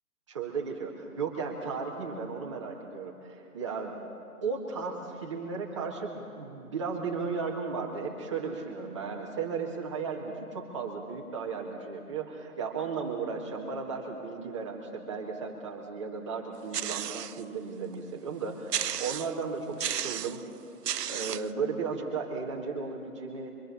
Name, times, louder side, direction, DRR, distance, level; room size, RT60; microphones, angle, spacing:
voice 1, 0.3-4.0 4.4-20.4 21.1-23.5, right 5 dB, 20° right, -1 dB, 1.8 m, -35 dB
sound 1, 16.7-17.4 17.9-18.0 18.7-19.4 19.8-20.4 20.8-21.5, right 9 dB, 90° right, 0.7 m, -33 dB
26.5 x 24.0 x 7.0 m, 2.7 s
hypercardioid pair, 175°, 46 cm